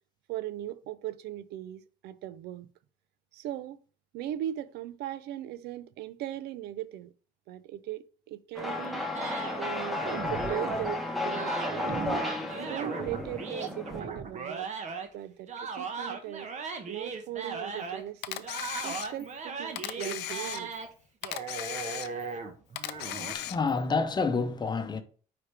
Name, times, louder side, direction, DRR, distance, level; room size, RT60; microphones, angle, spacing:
voice 1, 0.3-2.7 3.3-3.8 4.1-7.1 7.5-9.1 9.5-12.2 12.5-14.7 15.1-16.5 16.9-18.5 18.8-20.7, right 12 dB, 80° right, 0.4 m, -38 dB
sound 1, 8.5-14.0, left 2 dB, ahead, 1.1 m, -33 dB
sound 2, 9.1-10.9 11.3-15.1 15.5-18.1 18.4-20.9 21.2-23.3, right 5 dB, 45° right, 1.0 m, -37 dB
Camera, 18.2-19.4 19.8-20.9 21.2-22.4 22.8-23.8, left 14 dB, 85° left, 0.5 m, -37 dB
voice 2, 22.9-25.0, left 4 dB, 25° left, 0.8 m, -29 dB
9.4 x 3.4 x 3.3 m
cardioid pair, 110°, 17 cm